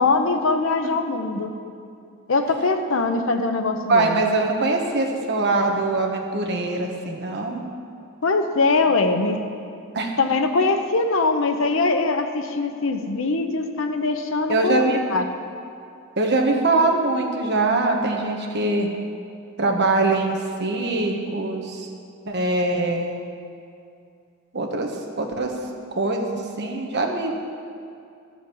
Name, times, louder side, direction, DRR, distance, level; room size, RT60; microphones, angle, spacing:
voice 1, 0.0-1.5 2.3-4.2 8.2-9.4 10.2-14.8 15.1-15.2, left 3 dB, 65° left, 6 dB, 0.8 m, -22 dB
voice 2, 3.9-7.6 9.9-10.2 14.5-15.0 16.2-18.9 19.6-21.9 22.2-23.2 24.5-24.9 25.2-25.5 25.9-27.4, right 2 dB, 55° right, 1 dB, 1.3 m, -22 dB
13.0 x 5.0 x 8.6 m, 2.4 s
head